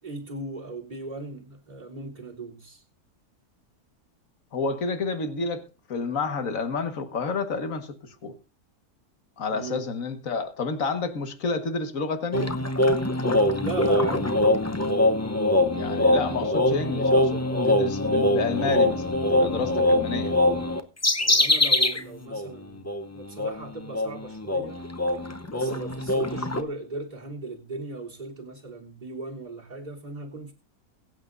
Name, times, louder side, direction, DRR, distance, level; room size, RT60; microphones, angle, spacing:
voice 1, 0.0-2.8 9.5-9.9 13.6-14.3 21.3-22.9 23.1-24.8 25.5-30.5, right 2 dB, 30° right, 3.4 m, -37 dB
voice 2, 4.5-5.6 5.9-8.3 9.4-12.5 15.7-20.3, left 4 dB, 65° left, 1.9 m, -30 dB
sound 1, 12.3-22.0 22.3-22.5 22.9-26.6, left 1 dB, 20° left, 0.5 m, -23 dB
22.0 x 8.8 x 2.6 m
omnidirectional pair, 1.6 m